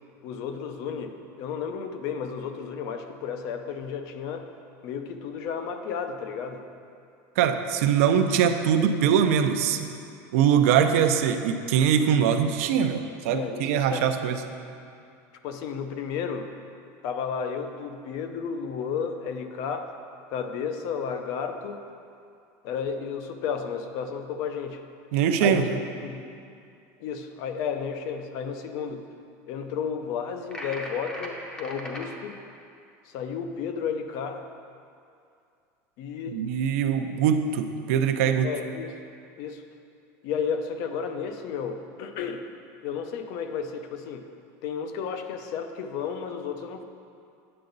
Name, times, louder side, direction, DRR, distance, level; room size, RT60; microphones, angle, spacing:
voice 1, 0.2-4.5 4.8-6.6 13.3-14.2 15.4-16.5 17.0-19.9 20.3-21.8 22.6-24.8 25.4-25.7 26.0-26.3 27.0-29.0 29.5-32.4 33.1-34.4 36.0-36.4 38.4-39.0 39.4-39.6 40.2-42.5 42.8-44.2 44.6-46.8, left 6 dB, 45° left, 7 dB, 0.5 m, -32 dB
voice 2, 7.4-9.8 10.3-14.4 25.1-25.8 36.3-38.5, right 8 dB, 70° right, 7 dB, 0.6 m, -22 dB
sound 1, 30.5-32.1, equal, 10° left, 0.7 m, -38 dB
8.7 x 7.7 x 3.9 m, 2.5 s
cardioid pair, 180°, 8 cm